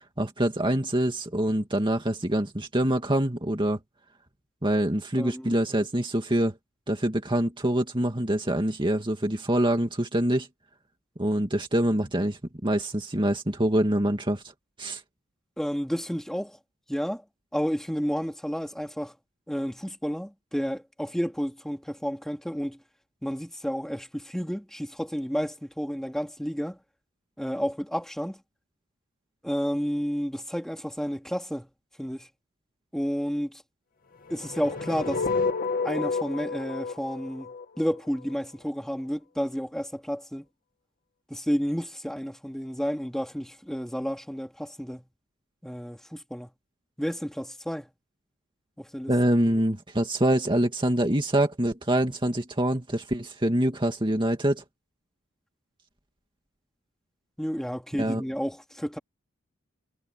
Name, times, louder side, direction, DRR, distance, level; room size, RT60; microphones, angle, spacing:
voice 1, 0.2-3.8 4.6-6.5 6.9-10.5 11.2-14.4 14.8-15.0 49.1-54.6 58.0-58.2, right 1 dB, 25° right, 2.3 m, -25 dB
voice 2, 5.2-5.6 15.6-16.6 16.9-17.2 17.5-19.1 19.5-22.8 23.2-26.8 27.4-28.4 29.4-31.7 32.0-32.3 32.9-33.6 34.3-35.3 35.8-40.5 41.3-45.1 45.6-46.5 47.0-47.9 48.8-49.1 57.4-59.0, equal, ahead, 3.1 m, -31 dB
sound 1, 34.3-38.4, left 4 dB, 45° left, 2.2 m, -30 dB
head